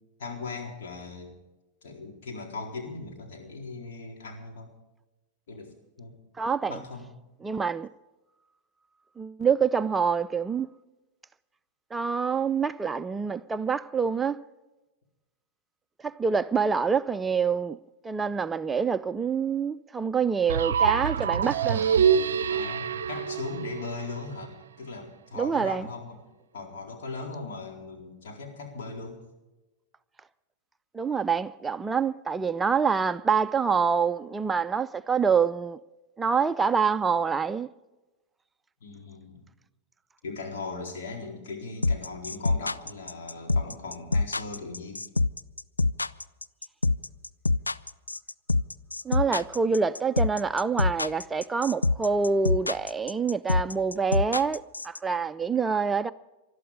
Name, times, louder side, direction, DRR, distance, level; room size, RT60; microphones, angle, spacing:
voice 1, 0.2-1.4 1.8-4.7 5.5-6.1 6.7-7.1 22.5-26.2 26.5-29.2 38.8-39.4 40.2-45.1, left 3 dB, 60° left, 4.1 m, -39 dB
voice 2, 6.4-6.8 7.4-7.9 9.2-10.7 11.9-14.4 16.0-17.8 18.0-21.9 25.3-25.9 30.9-35.8 36.2-37.7 49.0-56.1, right 5 dB, 15° right, 0.4 m, -26 dB
sound 1, 20.5-24.4, right 7 dB, 65° right, 0.5 m, -25 dB
sound 2, 41.8-55.0, left 3 dB, 80° left, 0.4 m, -25 dB
20.5 x 12.5 x 5.1 m
figure-of-eight pair, 90°, 0 cm